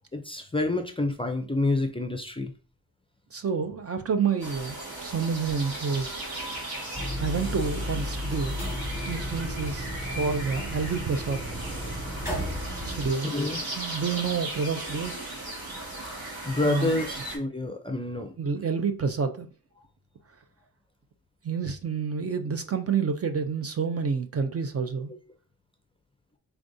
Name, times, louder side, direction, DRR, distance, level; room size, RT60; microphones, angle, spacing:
voice 1, 0.1-2.5 13.3-13.6 16.4-18.3, left 2 dB, 15° left, 0.4 m, -28 dB
voice 2, 3.3-6.3 7.2-8.7 9.1-11.4 12.8-13.5 13.8-15.2 16.6-17.0 18.4-19.5 21.4-25.1, right 5 dB, 40° right, 0.5 m, -29 dB
sound 1, 4.4-17.4, right 1 dB, 70° right, 2.2 m, -37 dB
sound 2, 6.9-13.1, equal, 5° right, 1.3 m, -33 dB
5.0 x 3.4 x 2.6 m
wide cardioid pair, 170°, 37 cm